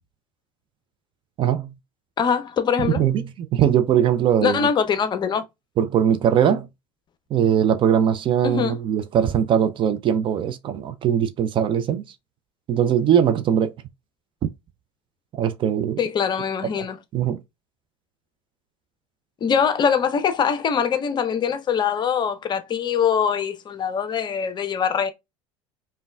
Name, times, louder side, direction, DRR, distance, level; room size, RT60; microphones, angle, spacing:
voice 1, 1.4-1.7 3.0-4.6 5.8-6.7 7.3-12.0 12.7-13.7 15.3-16.0 17.1-17.4, right 9 dB, 35° right, 0.4 m, -20 dB
voice 2, 2.2-3.0 4.4-5.4 8.4-8.8 16.0-17.0 19.4-25.1, left 7 dB, 30° left, 0.6 m, -23 dB
5.1 x 2.2 x 2.2 m
figure-of-eight pair, 70°, 15 cm